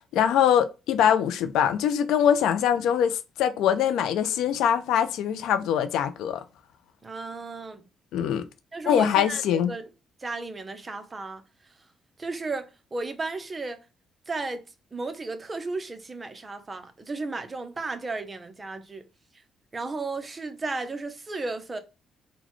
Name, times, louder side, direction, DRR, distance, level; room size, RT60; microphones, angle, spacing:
voice 1, 0.1-6.4 8.1-8.5 8.9-9.7, left 9 dB, 85° left, 0.4 m, -23 dB
voice 2, 7.0-7.9 8.7-9.9 10.2-11.4 12.2-13.9 14.3-14.6 14.9-19.0 19.7-21.8, right 3 dB, 25° right, 0.7 m, -34 dB
4.0 x 2.2 x 3.0 m
cardioid pair, 90°, 0 cm